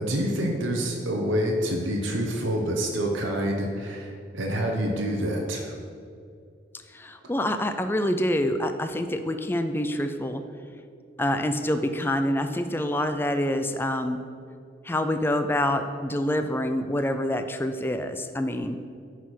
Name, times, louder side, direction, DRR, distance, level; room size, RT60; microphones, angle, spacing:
voice 1, 0.0-5.7, equal, 90° right, 0 dB, 0.9 m, -27 dB
voice 2, 6.9-10.4 11.2-14.2 14.8-18.8, left 1 dB, 10° left, 8 dB, 0.3 m, -26 dB
9.3 x 4.1 x 6.2 m, 2.3 s
head